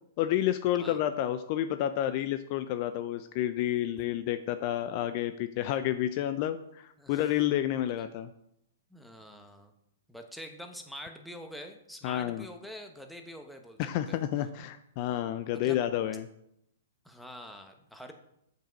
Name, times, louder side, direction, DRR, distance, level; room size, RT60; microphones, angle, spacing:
voice 1, 0.2-8.3 12.0-12.5 13.8-16.3, left 12 dB, 45° left, 10 dB, 0.4 m, -30 dB
voice 2, 8.9-9.7 10.1-14.2 15.5-15.8 17.0-18.1, equal, ahead, 4 dB, 1.0 m, -45 dB
7.3 x 5.5 x 5.2 m, 0.77 s
hypercardioid pair, 125°, 0 cm